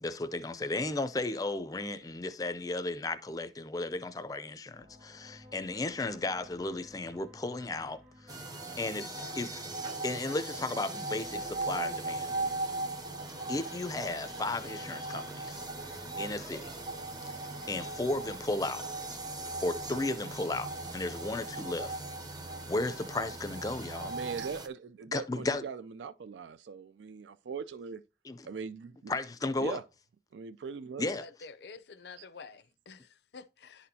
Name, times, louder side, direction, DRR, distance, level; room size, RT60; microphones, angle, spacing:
voice 1, 0.0-8.5 8.8-9.6 10.0-12.3 13.5-16.7 17.7-18.9 19.6-22.0 22.7-24.2 25.1-25.7 28.3-28.5 29.1-29.8 31.0-31.3, left 2 dB, 20° left, 0.4 m, -35 dB
sound 1, 4.7-24.6, equal, 40° right, 1.1 m, -54 dB
sound 2, 8.3-24.7, right 2 dB, 20° right, 0.6 m, -39 dB
voice 2, 24.0-28.0 28.5-29.1 29.6-29.8 30.3-31.1, right 5 dB, 85° right, 0.4 m, -40 dB
voice 3, 31.2-33.9, left 4 dB, 70° left, 0.5 m, -49 dB
11.0 x 4.3 x 2.7 m
head